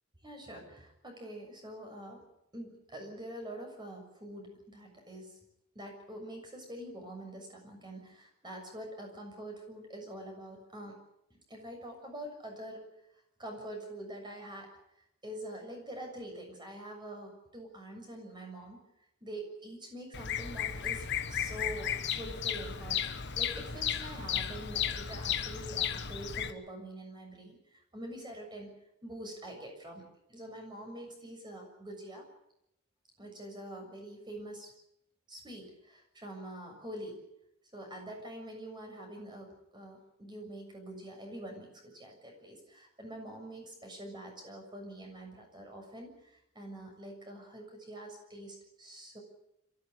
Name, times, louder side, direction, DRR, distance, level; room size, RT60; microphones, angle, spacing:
voice 1, 0.2-2.3 2.5-5.5 5.8-11.0 11.5-12.8 13.4-14.7 15.2-18.8 19.2-21.0 21.3-23.1 23.4-28.7 29.0-32.3 33.2-34.7 35.3-37.2 37.7-49.2, right 1 dB, 20° right, 2 dB, 7.0 m, -45 dB
Bird vocalization bird call bird song, 20.1-26.5, left 8 dB, 55° left, 1.4 m, -34 dB
26.0 x 15.0 x 10.0 m, 0.82 s
head